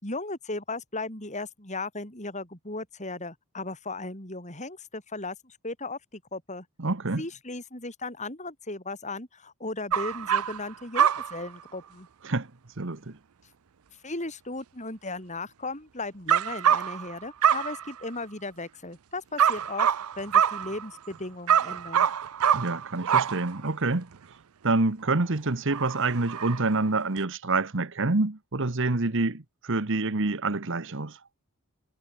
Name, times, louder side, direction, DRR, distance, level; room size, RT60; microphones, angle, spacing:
voice 1, 0.0-6.7 7.2-12.1 14.0-19.9 20.2-22.1, left 2 dB, 35° left, 7.3 m, -36 dB
voice 2, 6.8-7.2 12.2-12.5 12.8-13.2 22.5-24.1 24.6-31.2, right 3 dB, 60° right, 1.3 m, -27 dB
sound 1, 9.9-10.7 10.9-11.5 16.3-17.2 17.4-18.1 19.4-21.1 21.5-23.7 24.1-24.2 25.0-25.2 25.7-26.7 27.2-27.3, right 8 dB, 80° right, 0.5 m, -25 dB
head